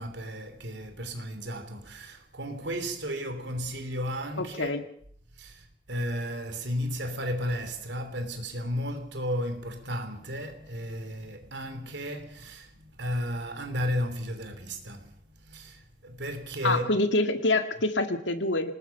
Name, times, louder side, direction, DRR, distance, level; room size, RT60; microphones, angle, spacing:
voice 1, 0.0-4.7 5.4-15.1 15.4-17.0, equal, 70° right, 3.2 m, -34 dB
voice 2, 4.4-4.8 16.6-18.7, left 2 dB, 80° left, 2.0 m, -26 dB
24.5 x 19.5 x 5.8 m
head